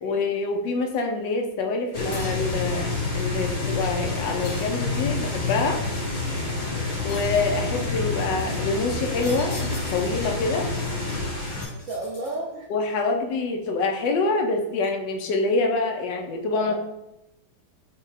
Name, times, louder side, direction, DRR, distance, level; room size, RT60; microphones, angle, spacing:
voice 1, 0.0-5.8 7.0-10.7 12.7-16.7, left 3 dB, 75° left, 3 dB, 1.2 m, -26 dB
sound 1, 1.9-11.7, left 3 dB, 40° left, 1.6 m, -28 dB
sound 2, 2.1-2.6 4.4-5.2 7.1-7.6 9.2-10.3 11.6-12.6, left 3 dB, 55° left, 1.4 m, -42 dB
voice 2, 6.7-7.0 11.6-12.6 16.6-16.7, right 2 dB, 85° right, -3 dB, 0.6 m, -34 dB
5.0 x 2.3 x 4.0 m, 0.90 s
omnidirectional pair, 2.1 m